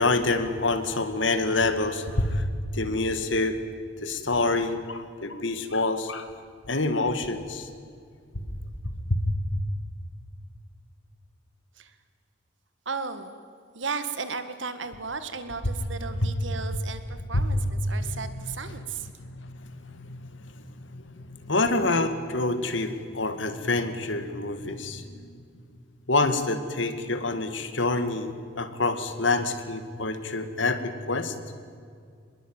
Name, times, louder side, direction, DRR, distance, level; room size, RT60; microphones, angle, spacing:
voice 1, 0.0-2.4 2.7-3.6 4.0-6.3 6.7-7.7 8.5-8.6 8.8-9.2 9.5-9.6 16.2-16.3 17.3-17.5 18.0-18.5 19.2-19.5 19.8-25.4 26.1-31.4, left 2 dB, 75° left, 9 dB, 2.3 m, -27 dB
voice 2, 12.9-13.3 13.7-19.1, right 5 dB, 75° right, 10 dB, 1.9 m, -35 dB
25.5 x 21.5 x 9.1 m, 2.2 s
head